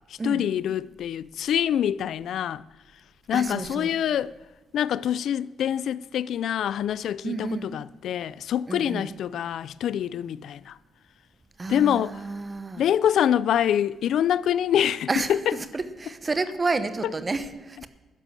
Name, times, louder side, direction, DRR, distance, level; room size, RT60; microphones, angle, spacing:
voice 1, 0.1-2.6 3.3-4.3 4.7-10.8 11.7-12.2 12.8-15.6, left 10 dB, 70° left, 0.3 m, -25 dB
voice 2, 3.3-3.9 7.2-7.7 8.7-9.2 11.6-12.8 15.1-17.9, right 3 dB, 25° right, 1.0 m, -30 dB
12.5 x 10.5 x 7.5 m
cardioid pair, 140°, 0 cm